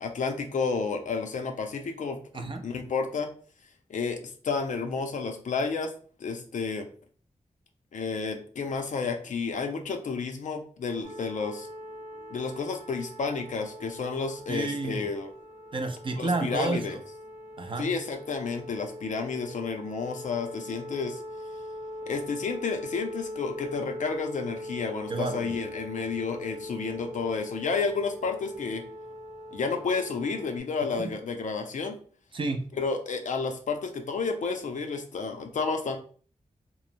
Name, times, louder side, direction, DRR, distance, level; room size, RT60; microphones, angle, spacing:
voice 1, 0.0-3.3 3.9-5.9 6.2-6.9 7.9-11.7 12.3-15.3 16.2-17.0 17.8-21.2 22.1-28.8 29.5-32.0 32.8-36.0, left 4 dB, 80° left, 5 dB, 0.4 m, -31 dB
voice 2, 2.3-2.7 14.5-15.1 15.7-17.0 17.6-17.9 25.1-25.5 31.0-31.1 32.3-32.7, right 3 dB, 40° right, 5 dB, 0.4 m, -30 dB
sound 1, 11.0-30.6, left 1 dB, 80° right, 0.6 m, -41 dB
3.0 x 2.0 x 2.5 m, 0.43 s
wide cardioid pair, 110°, 13 cm